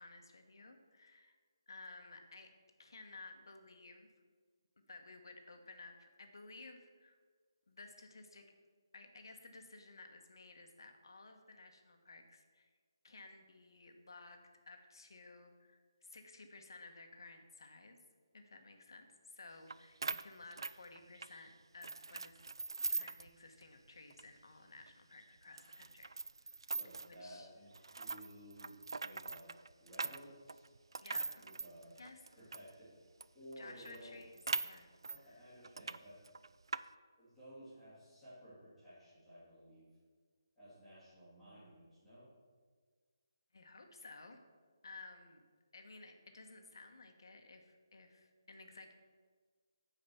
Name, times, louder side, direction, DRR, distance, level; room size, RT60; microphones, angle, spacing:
voice 1, 0.0-1.4 1.7-2.5 2.8-4.1 4.9-7.2 7.7-8.4 8.9-12.7 13.0-18.0 18.3-22.4 22.9-26.1 26.4-26.7 27.0-27.5 27.9-28.0 31.0-31.5 32.0-32.4 33.6-34.4 34.6-35.2 43.5-44.4 44.8-45.4 45.7-48.9, left 3 dB, 65° left, 5 dB, 1.2 m, -55 dB
sound 1, 19.7-19.8 20.0-21.3 21.8-23.3 23.6-23.7 24.1-24.2 24.8-24.9 25.6-27.2 27.7-32.7 33.2-33.3 33.5-33.6 33.9-35.2 35.6-36.0 36.3-36.8, right 4 dB, 80° right, 0.3 m, -41 dB
voice 2, 26.7-29.5 29.8-30.7 31.1-32.0 32.3-33.0 33.3-34.3 35.1-36.2 37.2-39.9 40.6-42.3, equal, ahead, -16 dB, 2.5 m, -55 dB
9.0 x 4.9 x 7.0 m, 1.6 s
hypercardioid pair, 175°, 2 cm